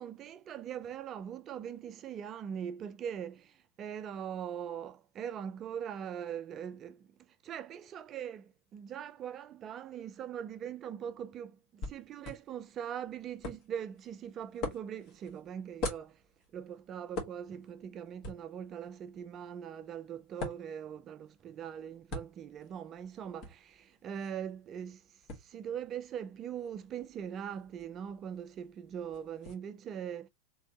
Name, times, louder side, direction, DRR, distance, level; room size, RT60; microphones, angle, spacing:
voice 1, 0.0-16.2 16.5-30.3, right 8 dB, 30° right, 0.3 m, -41 dB
sound 1, 11.8-29.5, left 2 dB, 40° left, 1.4 m, -46 dB
3.6 x 3.4 x 2.8 m
figure-of-eight pair, 90°, 0 cm